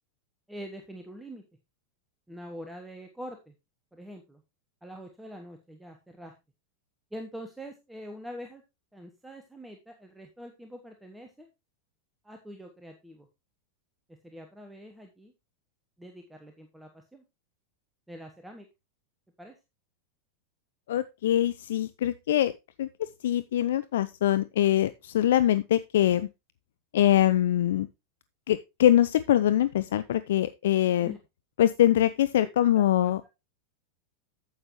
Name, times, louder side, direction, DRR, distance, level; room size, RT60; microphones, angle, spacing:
voice 1, 0.5-1.4 2.3-3.5 3.9-4.4 4.8-6.3 7.1-8.6 8.9-11.5 12.2-13.3 14.2-15.3 16.0-17.2 18.1-18.7 19.4-19.5 31.0-31.2 32.4-32.5 32.7-33.3, equal, 5° right, 5 dB, 1.1 m, -44 dB
voice 2, 20.9-22.5 22.8-26.3 26.9-27.9 28.5-31.1 31.6-33.2, left 12 dB, 60° left, 14 dB, 0.4 m, -23 dB
9.4 x 7.9 x 3.1 m, 0.24 s
figure-of-eight pair, 90°, 0 cm